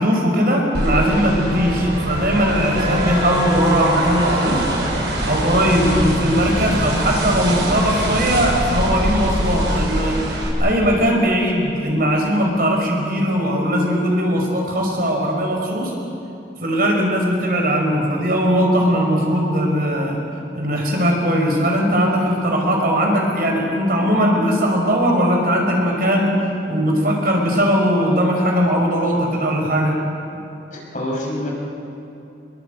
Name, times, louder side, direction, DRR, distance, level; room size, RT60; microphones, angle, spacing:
voice 1, 0.0-4.6 5.2-10.2 10.6-15.9 16.6-20.2 20.5-26.3 26.7-29.9, equal, 50° right, 0 dB, 5.4 m, -19 dB
sound 1, 0.7-10.5, right 1 dB, 75° right, 6.8 m, -23 dB
voice 2, 30.7-31.5, left 1 dB, 45° left, -1 dB, 5.7 m, -27 dB
26.0 x 22.0 x 8.1 m, 2.8 s
head